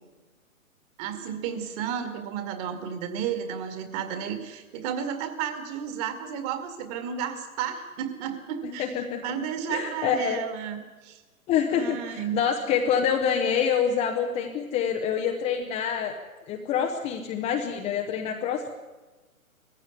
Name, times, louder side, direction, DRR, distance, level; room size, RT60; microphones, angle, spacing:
voice 1, 1.0-8.9 9.2-11.2 11.7-12.4, right 8 dB, 25° right, 8 dB, 2.2 m, -32 dB
voice 2, 8.6-9.4 9.7-10.4 11.5-16.1 16.5-18.7, left 7 dB, 15° left, 2 dB, 0.9 m, -26 dB
19.0 x 15.5 x 9.7 m, 1.2 s
figure-of-eight pair, 135°, 43 cm